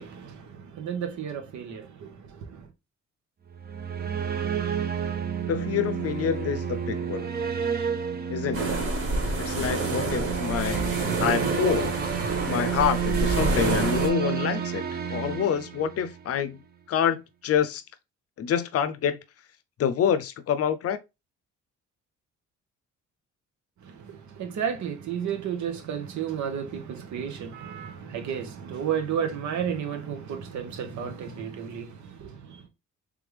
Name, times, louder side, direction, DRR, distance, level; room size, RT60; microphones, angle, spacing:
voice 1, 0.0-2.7 23.8-32.7, right 8 dB, 70° right, 1.1 m, -33 dB
sound 1, 3.5-16.3, right 8 dB, 30° right, 0.8 m, -30 dB
voice 2, 5.5-7.3 8.3-8.8 9.4-10.9 11.2-11.9 12.5-14.8 15.1-16.6 16.9-17.8 18.4-19.2 19.8-21.0, left 8 dB, 50° left, 0.6 m, -27 dB
sound 2, 8.5-14.1, right 2 dB, 45° right, 1.6 m, -28 dB
3.5 x 3.4 x 3.3 m
cardioid pair, 90°, 30 cm